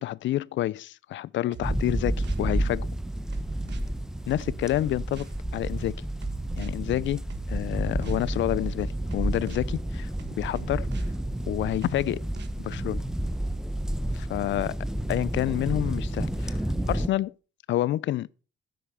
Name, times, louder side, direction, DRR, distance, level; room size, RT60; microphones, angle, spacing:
voice 1, 0.0-2.9 4.3-6.0 6.6-10.1 10.4-10.9 11.5-12.3 12.6-13.1 14.1-14.8 15.1-16.6 16.9-17.3 17.7-18.3, left 14 dB, 70° left, 0.5 m, -28 dB
sound 1, 1.5-2.5 3.3-3.9 4.4-5.4 6.2-6.7 7.3-8.3 9.1-9.7 10.2-11.2 11.8-12.9, right 7 dB, 60° right, 1.6 m, -43 dB
sound 2, 1.6-17.1, right 1 dB, 5° right, 1.0 m, -30 dB
10.5 x 8.5 x 5.6 m
cardioid pair, 90°, 20 cm